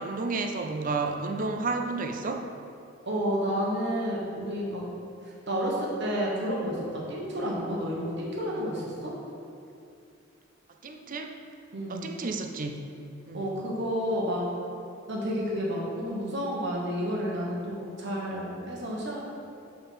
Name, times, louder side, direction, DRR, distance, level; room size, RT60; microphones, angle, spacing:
voice 1, 0.0-2.5 10.8-11.4 11.9-12.8 13.3-13.5, right 3 dB, 40° right, 4 dB, 0.5 m, -31 dB
voice 2, 3.0-4.8 5.2-9.1 11.7-12.1 13.3-14.4 15.1-19.2, equal, 60° right, -3 dB, 1.3 m, -30 dB
5.4 x 4.4 x 5.5 m, 2.5 s
head